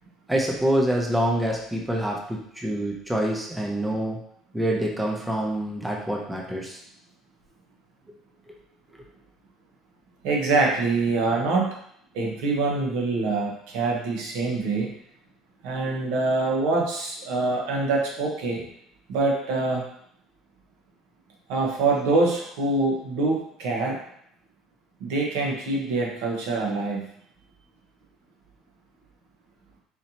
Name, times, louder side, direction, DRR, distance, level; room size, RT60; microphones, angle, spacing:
voice 1, 0.3-4.2 4.5-6.8 8.5-8.6, right 1 dB, 5° right, -1 dB, 0.5 m, -26 dB
voice 2, 10.2-11.7 12.1-14.9 15.6-18.6 19.1-19.9 21.5-24.0 25.0-27.0, right 3 dB, 85° right, -1 dB, 0.9 m, -25 dB
4.2 x 2.7 x 2.8 m, 0.69 s
cardioid pair, 160°, 0 cm